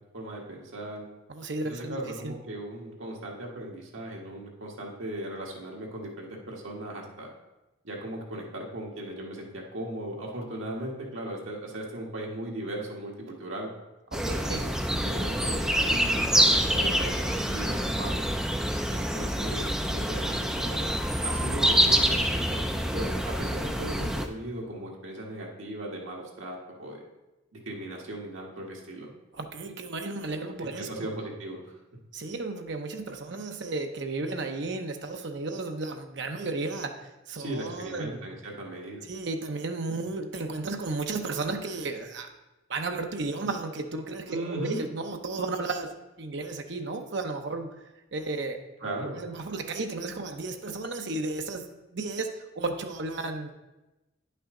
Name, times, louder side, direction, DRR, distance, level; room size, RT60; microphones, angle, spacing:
voice 1, 0.1-1.0 1.6-7.3 7.8-13.7 14.2-18.3 18.9-27.0 27.5-29.1 30.6-31.8 37.4-39.1 44.3-44.8 48.8-49.2, right 1 dB, 75° right, -1 dB, 1.5 m, -37 dB
voice 2, 1.3-2.3 14.1-14.6 29.3-31.1 32.1-36.9 37.3-38.3 39.1-42.3 42.7-47.7 48.1-48.6 49.1-51.6 51.9-53.5, right 3 dB, 55° right, 5 dB, 0.7 m, -33 dB
sound 1, 14.1-24.3, equal, 5° right, 0.3 m, -26 dB
9.5 x 5.6 x 3.7 m, 1.0 s
head